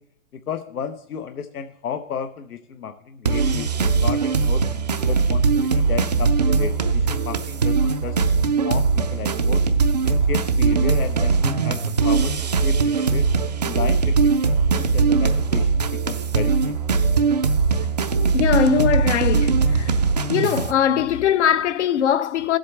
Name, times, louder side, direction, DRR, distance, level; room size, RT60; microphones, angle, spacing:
voice 1, 0.5-4.6 5.1-8.2 8.6-8.8 9.1-9.6 10.0-13.3 13.6-16.8, left 7 dB, 90° left, 1.0 m, -33 dB
sound 1, 3.3-20.7, right 4 dB, 30° right, 0.4 m, -20 dB
voice 2, 18.3-19.9 20.3-22.6, left 9 dB, 55° left, 0.6 m, -21 dB
16.5 x 7.8 x 3.3 m
hypercardioid pair, 155°, 43 cm